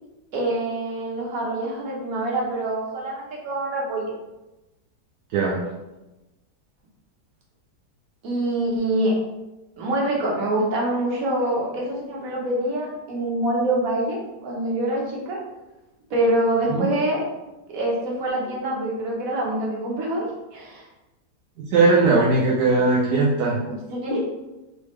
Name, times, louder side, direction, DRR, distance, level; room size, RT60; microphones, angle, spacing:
voice 1, 0.3-4.1 8.2-9.1 9.8-15.4 16.1-17.2 17.7-20.8 23.9-24.2, right 1 dB, 60° right, -3 dB, 1.4 m, -25 dB
voice 2, 5.3-5.6 16.7-16.9 21.7-23.6, right 3 dB, 75° right, -2 dB, 1.2 m, -19 dB
4.1 x 3.6 x 3.1 m, 1.0 s
omnidirectional pair, 1.8 m